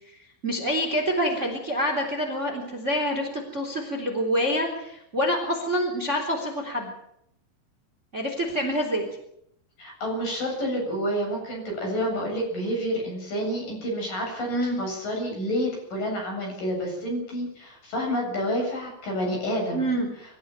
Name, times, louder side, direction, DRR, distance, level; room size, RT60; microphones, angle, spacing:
voice 1, 0.4-6.9 8.1-9.1 14.5-14.8 19.7-20.1, equal, 20° right, 3 dB, 3.2 m, -26 dB
voice 2, 9.8-14.5 14.8-19.9, equal, 50° left, 0 dB, 9.3 m, -29 dB
25.0 x 14.0 x 8.9 m, 0.74 s
omnidirectional pair, 4.9 m